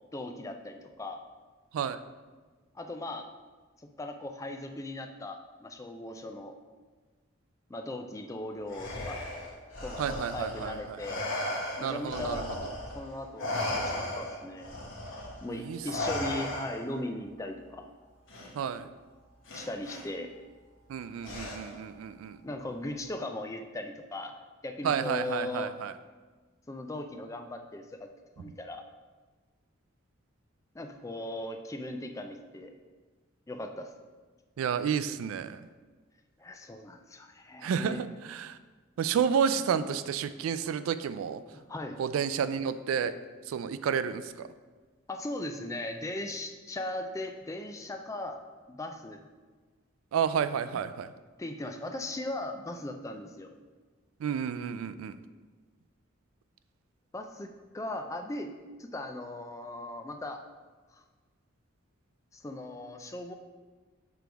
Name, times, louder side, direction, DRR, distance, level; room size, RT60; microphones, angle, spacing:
voice 1, 0.1-1.2 2.7-3.3 4.0-6.5 7.7-9.2 9.8-11.3 11.8-12.5 12.9-14.8 15.4-17.9 19.5-20.3 22.4-24.4 24.6-25.7 26.7-28.1 28.4-28.8 30.7-32.7 33.5-33.9 36.4-38.0 41.5-42.0 45.1-48.4 48.7-49.3 51.4-53.5 57.1-58.5 58.8-60.4 60.9-61.0 62.3-63.3, left 1 dB, 15° left, 5 dB, 0.3 m, -38 dB
Respiratory sounds, 8.7-13.0 13.4-17.0 18.3-18.5 19.5-20.0 21.2-21.9, left 1 dB, 70° left, 1.2 m, -36 dB
voice 2, 10.0-11.0 11.8-12.4 15.6-15.8 18.5-18.9 20.9-22.4 24.8-25.9 34.6-35.6 37.6-38.6 39.0-41.4 42.0-43.2 43.5-44.5 50.1-51.1 54.2-55.2, right 7 dB, 85° right, 13 dB, 0.3 m, -31 dB
6.0 x 3.4 x 4.6 m, 1.4 s
head